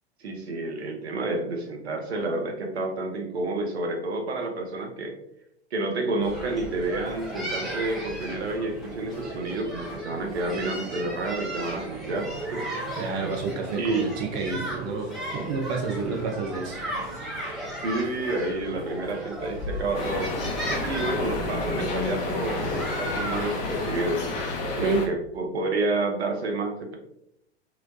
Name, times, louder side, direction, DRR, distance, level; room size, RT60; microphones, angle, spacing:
voice 1, 0.2-5.1 5.7-12.6 13.2-13.3 13.7-14.1 16.9-17.0 17.8-20.3 20.8-24.3 24.8-27.0, right 2 dB, 70° right, 2 dB, 0.7 m, -29 dB
sound 1, 6.2-23.9, equal, ahead, 0.8 m, -35 dB
voice 2, 13.0-16.8 17.1-17.4 20.7-20.9 24.8-25.0, right 4 dB, 25° right, 2 dB, 0.4 m, -30 dB
sound 2, 19.9-25.1, left 3 dB, 40° left, 0.8 m, -30 dB
3.0 x 2.9 x 2.5 m, 0.76 s
figure-of-eight pair, 100°, 33 cm